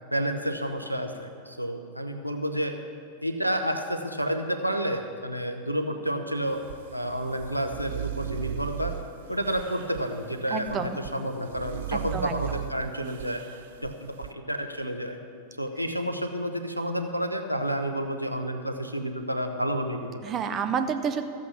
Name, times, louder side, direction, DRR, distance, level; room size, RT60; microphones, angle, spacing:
voice 1, 0.1-2.7 3.2-6.6 6.9-8.9 9.3-13.4 13.8-15.2 15.6-20.1, equal, 90° right, 6 dB, 0.9 m, -30 dB
sound 1, 6.5-14.3, right 14 dB, 55° right, 0.3 m, -38 dB
voice 2, 10.5-11.0 11.9-12.4 20.2-21.3, right 6 dB, 30° right, 9 dB, 0.8 m, -29 dB
14.0 x 8.5 x 6.0 m, 2.3 s
figure-of-eight pair, 90°, 0 cm